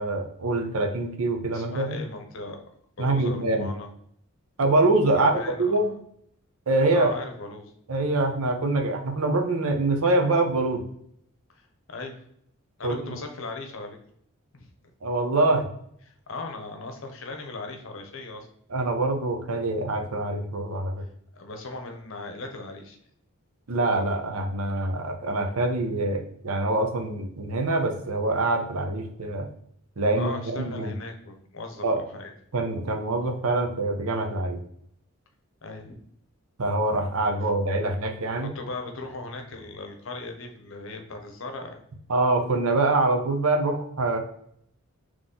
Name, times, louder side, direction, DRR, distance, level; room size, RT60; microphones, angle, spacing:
voice 1, 0.0-2.0 3.0-3.7 4.6-5.9 6.7-7.1 7.9-10.9 12.8-13.2 15.0-15.7 18.7-20.9 23.7-29.5 30.0-30.9 31.8-32.0 32.5-34.6 36.6-38.5 42.1-44.2, right 2 dB, 80° right, 4 dB, 0.8 m, -25 dB
voice 2, 1.5-2.6 3.0-3.9 5.1-6.0 6.9-7.7 11.5-12.2 12.8-14.0 14.6-14.7 16.1-18.5 21.0-23.0 30.2-32.3 35.6-36.0 37.4-37.5 38.4-41.8, left 3 dB, 60° left, 4 dB, 0.8 m, -38 dB
4.1 x 3.1 x 3.7 m, 0.69 s
head